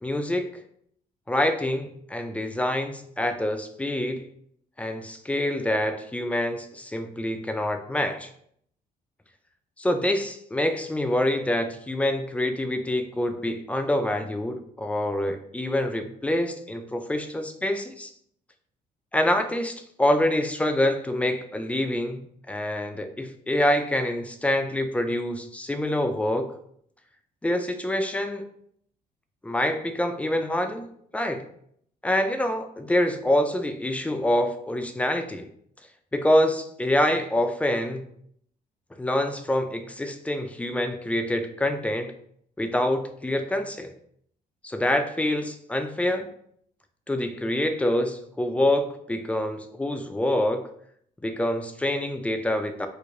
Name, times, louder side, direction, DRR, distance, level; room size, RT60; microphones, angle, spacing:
voice 1, 0.0-0.6 1.3-4.2 4.8-8.3 9.8-18.1 19.1-22.2 22.5-26.5 27.4-28.4 29.4-30.9 31.1-31.4 32.0-35.5 36.1-38.1 39.0-42.1 42.6-43.9 44.6-46.3 47.1-50.6 51.2-52.9, left 1 dB, 10° left, 7 dB, 0.3 m, -26 dB
3.1 x 2.5 x 3.7 m, 0.67 s
cardioid pair, 115°, 17 cm